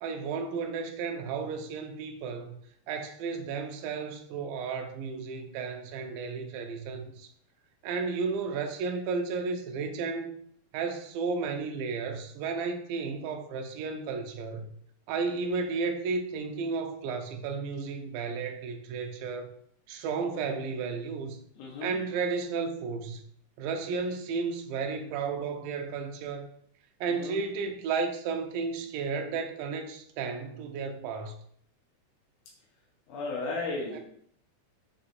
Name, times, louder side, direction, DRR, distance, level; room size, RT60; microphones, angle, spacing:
voice 1, 0.0-2.5 2.9-7.3 7.8-10.3 10.7-14.7 15.1-19.5 19.9-21.4 21.8-23.2 23.6-26.5 27.0-31.4 33.9-34.0, right 5 dB, 80° right, 4 dB, 1.9 m, -33 dB
voice 2, 21.6-22.0 27.1-27.4 33.1-34.0, left 3 dB, 75° left, -3 dB, 1.6 m, -34 dB
5.6 x 2.9 x 2.5 m, 0.63 s
omnidirectional pair, 3.7 m